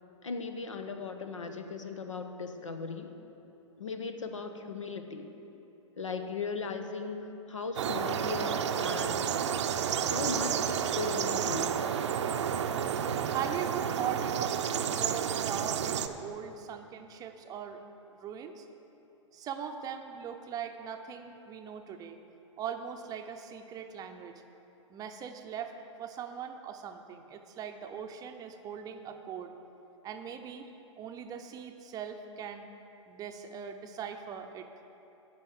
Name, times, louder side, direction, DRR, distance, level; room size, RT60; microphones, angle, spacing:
voice 1, 0.2-3.2 3.8-5.3 6.0-9.2 10.0-11.7, left 4 dB, 80° left, 7 dB, 0.9 m, -37 dB
sound 1, 7.8-16.1, right 8 dB, 65° right, 0.6 m, -31 dB
voice 2, 13.3-17.8 18.1-18.7 19.3-22.2 22.6-24.4 24.9-29.5 30.0-30.7 31.0-32.7 33.1-34.7, right 8 dB, 25° right, 6 dB, 0.6 m, -40 dB
10.5 x 5.3 x 8.0 m, 3.0 s
hypercardioid pair, 110°, 16 cm